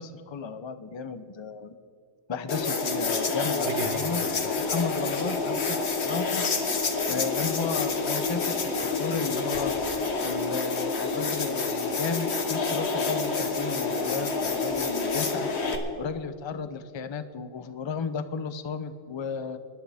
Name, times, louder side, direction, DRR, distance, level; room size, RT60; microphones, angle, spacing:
voice 1, 0.0-1.7 2.3-6.4 7.1-9.7 10.2-15.5 16.0-19.6, left 5 dB, 35° left, 11 dB, 0.5 m, -34 dB
sound 1, 2.5-15.8, left 4 dB, 75° left, 1.5 m, -28 dB
sound 2, 3.6-9.3, right 5 dB, 65° right, 1.2 m, -43 dB
24.5 x 12.0 x 3.4 m, 2.5 s
omnidirectional pair, 1.1 m